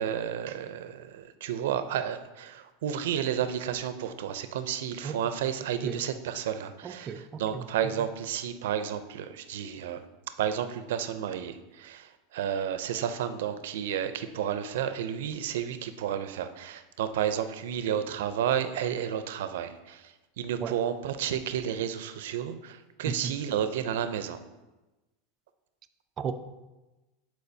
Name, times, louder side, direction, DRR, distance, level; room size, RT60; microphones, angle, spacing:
voice 1, 0.0-10.0 10.3-24.4, right 9 dB, 80° right, 10 dB, 0.5 m, -31 dB
voice 2, 6.8-7.6 20.6-20.7 23.1-23.3 26.2-26.3, right 6 dB, 30° right, 7 dB, 0.4 m, -34 dB
11.5 x 4.6 x 2.7 m, 1.1 s
supercardioid pair, 145°, 0 cm